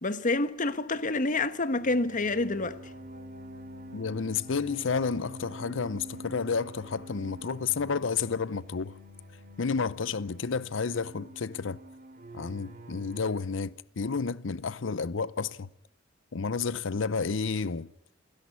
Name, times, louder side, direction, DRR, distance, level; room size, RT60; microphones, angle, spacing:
voice 1, 0.0-2.8, left 2 dB, 40° left, 1.2 m, -28 dB
sound 1, 1.7-13.4, equal, 50° right, 2.6 m, -46 dB
voice 2, 3.9-8.9 9.6-11.8 12.3-15.7 16.3-17.9, left 5 dB, 70° left, 0.7 m, -31 dB
29.0 x 10.5 x 9.7 m
head